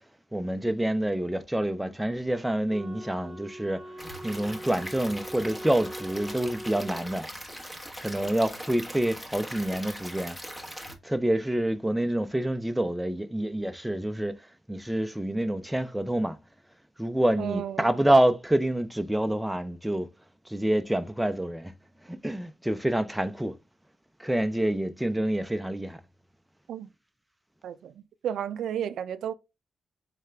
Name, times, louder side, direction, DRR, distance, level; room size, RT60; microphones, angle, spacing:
voice 1, 0.3-3.9 4.2-7.3 8.0-10.4 11.0-14.4 14.7-16.4 17.0-20.1 20.5-21.7 22.0-23.6 24.2-26.0, right 1 dB, 5° right, 0.4 m, -27 dB
Wind instrument woodwind instrument, 2.7-7.0, right 1 dB, 30° right, 1.2 m, -42 dB
Stream / Liquid, 4.0-10.9, equal, 10° left, 0.9 m, -40 dB
voice 2, 17.4-17.9 26.7-26.9 27.6-27.9 28.2-29.3, right 9 dB, 90° right, 0.3 m, -32 dB
3.6 x 3.2 x 3.2 m
cardioid pair, 115°, 0 cm